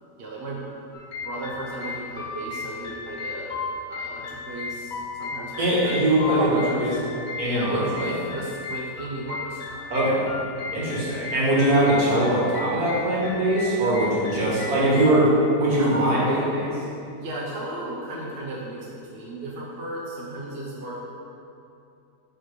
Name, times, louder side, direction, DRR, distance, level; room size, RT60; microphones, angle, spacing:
voice 1, 0.2-0.6 1.2-3.6 3.9-6.0 6.3-7.0 7.4-9.9 15.7-16.5 17.2-21.0, right 2 dB, 45° right, -5 dB, 1.0 m, -34 dB
sound 1, 0.9-15.1, left 4 dB, 50° left, 0.9 m, -35 dB
voice 2, 5.6-6.9 7.4-8.2 9.9-10.3 10.7-16.7, right 1 dB, 60° right, -7 dB, 2.1 m, -22 dB
6.0 x 4.7 x 4.9 m, 2.6 s
omnidirectional pair, 1.8 m